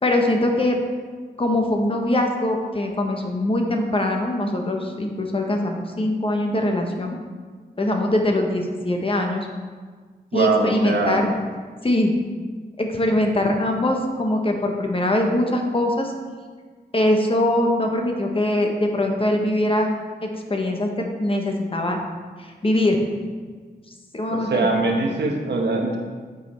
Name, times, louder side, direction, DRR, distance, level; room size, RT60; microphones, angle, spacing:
voice 1, 0.0-0.8 1.4-7.2 7.8-9.5 10.3-11.3 11.8-12.1 12.8-16.1 16.9-19.9 20.2-22.0 22.4-23.0 24.1-24.7, left 1 dB, 30° left, 2 dB, 1.0 m, -22 dB
voice 2, 10.3-11.3 24.3-26.0, right 3 dB, 80° right, 1 dB, 1.1 m, -22 dB
9.1 x 5.3 x 4.3 m, 1.5 s
wide cardioid pair, 110°, 17 cm